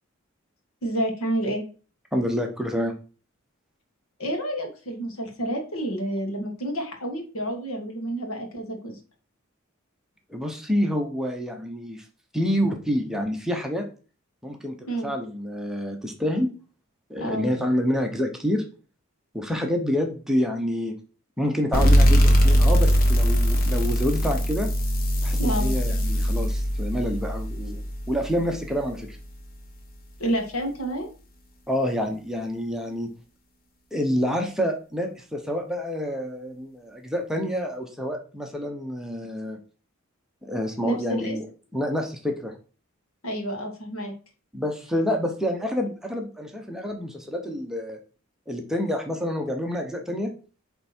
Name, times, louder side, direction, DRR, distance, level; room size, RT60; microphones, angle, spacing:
voice 1, 0.8-1.7 4.2-9.0 14.9-15.1 17.2-17.5 25.4-25.7 30.2-31.1 40.8-41.4 43.2-44.1, right 1 dB, 80° left, 3 dB, 1.8 m, -29 dB
voice 2, 2.1-2.9 10.3-12.0 12.3-13.8 14.4-14.7 15.0-16.5 17.1-18.6 19.3-20.9 21.4-24.7 25.2-29.2 31.7-33.1 33.9-39.6 40.4-41.5 41.7-42.5 44.5-48.0 48.5-50.3, equal, ahead, 2 dB, 0.9 m, -27 dB
sound 1, 21.7-29.0, equal, 45° left, 1.2 m, -21 dB
8.2 x 3.5 x 4.4 m, 0.37 s
head